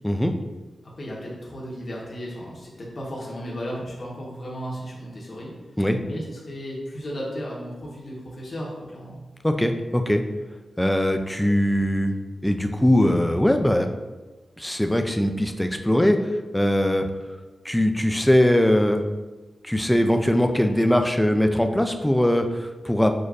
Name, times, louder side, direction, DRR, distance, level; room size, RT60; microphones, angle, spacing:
voice 1, 0.8-5.5 6.0-9.2, equal, 45° left, -4 dB, 1.0 m, -35 dB
voice 2, 9.4-10.2 10.8-12.1 12.4-13.9 14.6-17.1 17.7-19.0 19.6-23.1, left 1 dB, 5° left, 6 dB, 0.3 m, -21 dB
6.3 x 2.5 x 2.4 m, 1.2 s
wide cardioid pair, 110°, 0 cm